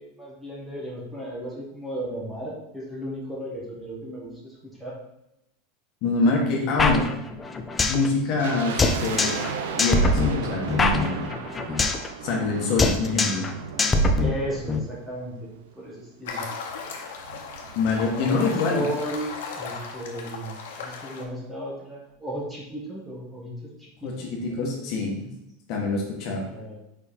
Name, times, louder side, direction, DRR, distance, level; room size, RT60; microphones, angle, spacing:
voice 1, 0.0-4.9 6.5-7.0 8.8-8.9 14.2-16.4 18.1-25.1 26.4-26.8, right 1 dB, 10° right, -4 dB, 1.4 m, -35 dB
voice 2, 6.0-7.1 7.9-9.4 9.7-11.2 12.2-13.5 17.7-18.9 24.0-25.3 25.7-26.4, left 3 dB, 45° left, -1 dB, 1.4 m, -25 dB
sound 1, 6.8-8.1 8.3-8.4 8.8-9.5 9.8-12.1 12.3-12.5 12.8-13.5 13.8-14.8, left 2 dB, 15° left, 0.4 m, -23 dB
sound 2, 8.4-15.7 15.9-16.0 16.7-18.5 18.8-18.9 19.1-19.4 19.8-19.9, right 6 dB, 90° right, 0.8 m, -36 dB
sound 3, 16.3-21.2, left 5 dB, 90° left, 1.2 m, -36 dB
5.1 x 4.6 x 4.4 m, 0.87 s
supercardioid pair, 165°, 0 cm